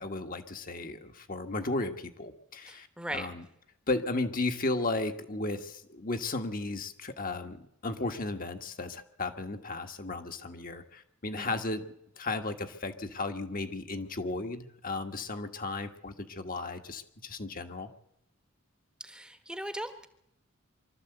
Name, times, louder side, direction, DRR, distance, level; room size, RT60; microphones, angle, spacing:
voice 1, 0.0-2.9 3.1-3.4 3.9-11.8 12.2-17.9, left 2 dB, 40° left, 6 dB, 1.5 m, -34 dB
voice 2, 2.7-3.3 11.4-11.6 19.0-20.1, right 1 dB, 5° right, 9 dB, 1.2 m, -39 dB
24.5 x 13.0 x 8.1 m, 0.77 s
head